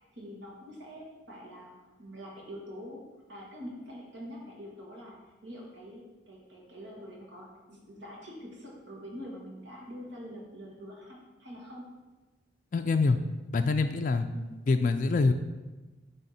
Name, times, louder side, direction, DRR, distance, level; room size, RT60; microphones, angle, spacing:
voice 1, 0.0-3.0 3.3-5.2 5.4-11.9 14.3-14.5, equal, 80° right, -3 dB, 2.0 m, -45 dB
voice 2, 12.7-13.2 13.5-14.3 14.7-15.3, left 3 dB, 45° left, 6 dB, 0.3 m, -25 dB
10.5 x 3.5 x 4.2 m, 1.2 s
head